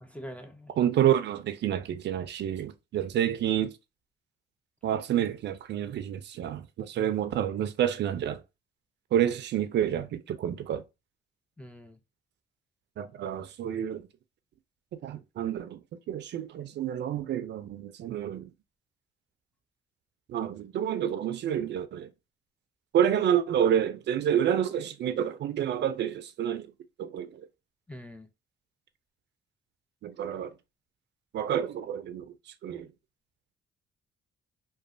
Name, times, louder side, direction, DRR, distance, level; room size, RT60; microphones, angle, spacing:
voice 1, 0.0-0.7 11.6-12.0 27.9-28.3, equal, 5° left, 0.4 m, -44 dB
voice 2, 0.8-3.7 4.8-8.4 9.1-10.8 13.0-14.1 15.0-18.5 20.3-22.1 22.9-26.7 27.0-27.5 30.0-30.5 31.3-32.2 32.6-32.9, right 10 dB, 60° right, 0.4 m, -29 dB
3.0 x 2.2 x 2.5 m
cardioid pair, 90°, 20 cm